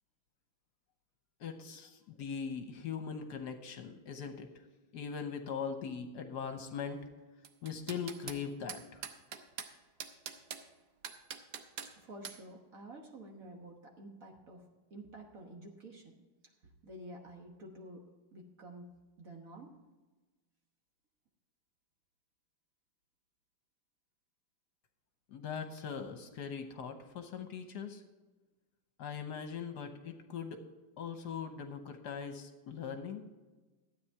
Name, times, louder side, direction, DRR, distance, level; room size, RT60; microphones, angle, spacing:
voice 1, 1.4-4.5 4.9-7.0 7.6-9.0 25.3-28.0 29.0-30.6 31.0-33.2, left 6 dB, 65° left, 7 dB, 1.4 m, -41 dB
sound 1, 7.4-8.4 8.7-9.7 10.0-10.6 11.0-11.9 12.2-12.4, right 7 dB, 65° right, 1.4 m, -43 dB
voice 2, 12.0-16.1 16.4-18.9 19.2-19.7, right 1 dB, 50° right, 1 dB, 1.6 m, -50 dB
12.5 x 8.8 x 4.6 m, 1.2 s
omnidirectional pair, 2.0 m